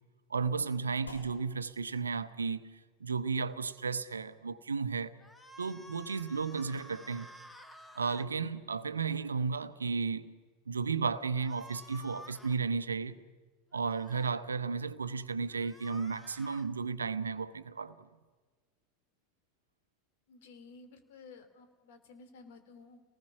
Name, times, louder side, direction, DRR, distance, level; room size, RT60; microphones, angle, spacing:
voice 1, 0.3-5.2 5.6-7.3 7.9-10.3 10.7-13.2 13.7-18.0, right 5 dB, 80° right, 0.8 m, -34 dB
sound 1, 1.1-9.8, left 2 dB, 85° left, 3.0 m, -60 dB
sound 2, 5.2-8.3 11.4-12.6 13.7-14.3 15.5-16.7, left 1 dB, 10° left, 2.0 m, -52 dB
voice 2, 20.3-23.0, left 4 dB, 60° left, 3.0 m, -54 dB
29.0 x 19.5 x 5.9 m
figure-of-eight pair, 85°, 0 cm